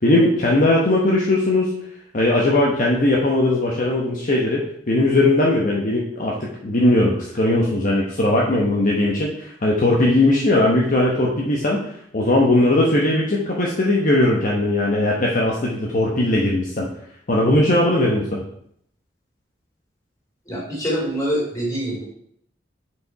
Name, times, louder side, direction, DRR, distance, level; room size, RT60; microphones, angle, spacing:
voice 1, 0.0-1.7 2.1-11.8 12.1-16.9 17.3-18.4, left 1 dB, 45° left, -3 dB, 1.1 m, -19 dB
voice 2, 20.5-22.0, equal, 20° left, -4 dB, 3.4 m, -25 dB
6.8 x 5.2 x 4.6 m, 0.69 s
head